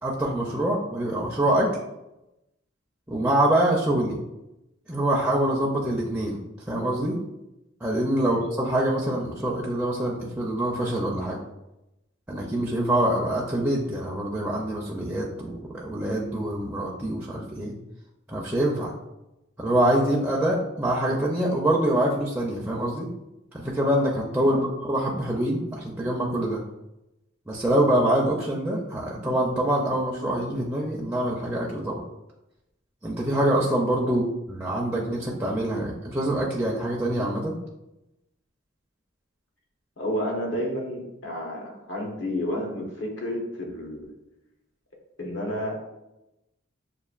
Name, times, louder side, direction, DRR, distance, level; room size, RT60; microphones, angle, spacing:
voice 1, 0.0-1.7 3.1-4.2 4.9-6.4 6.7-7.2 7.8-11.4 12.3-17.7 18.3-18.9 19.6-23.1 23.5-26.6 27.5-31.9 33.0-34.2 34.5-37.6, right 1 dB, 5° right, -3 dB, 0.4 m, -25 dB
voice 2, 40.0-44.0 45.2-45.8, left 1 dB, 65° left, -1 dB, 1.0 m, -31 dB
6.6 x 2.4 x 2.4 m, 0.93 s
head